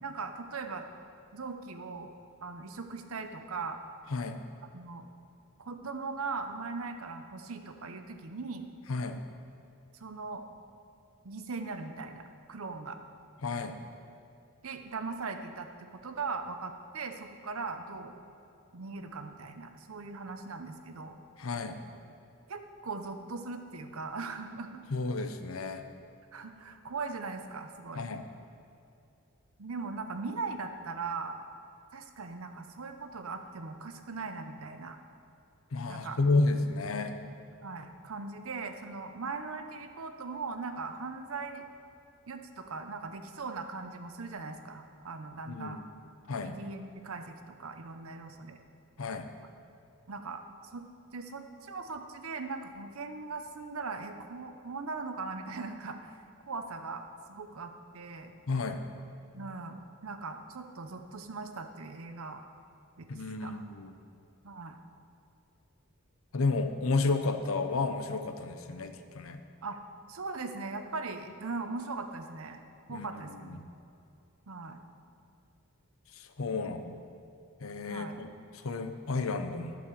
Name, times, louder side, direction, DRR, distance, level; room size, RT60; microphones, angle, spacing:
voice 1, 0.0-0.9 1.3-2.1 2.4-3.8 4.7-5.0 5.6-8.7 10.0-10.4 11.2-13.0 14.6-15.7 16.0-18.2 18.7-21.2 22.5-24.8 26.3-28.0 29.6-31.4 31.9-35.0 35.9-36.2 37.6-41.7 42.3-45.8 46.4-48.6 50.1-50.4 50.7-50.8 51.1-56.2 56.5-57.0 57.3-58.3 59.3-62.4 63.0-63.6 64.4-64.8 69.6-69.8 70.1-72.6 72.9-73.7 74.5-74.8 76.5-76.6 77.9-78.2, right 4 dB, 80° right, 7 dB, 0.8 m, -39 dB
voice 2, 13.4-13.8 21.4-21.8 24.9-25.8 27.9-28.2 35.7-37.1 45.5-45.8 46.3-46.6 49.0-49.3 58.5-58.8 63.1-63.9 66.3-69.4 72.9-73.1 73.4-73.6 76.2-77.0 77.6-78.3 78.6-79.8, left 3 dB, 75° left, 8 dB, 0.7 m, -31 dB
11.5 x 5.2 x 6.8 m, 2.6 s
head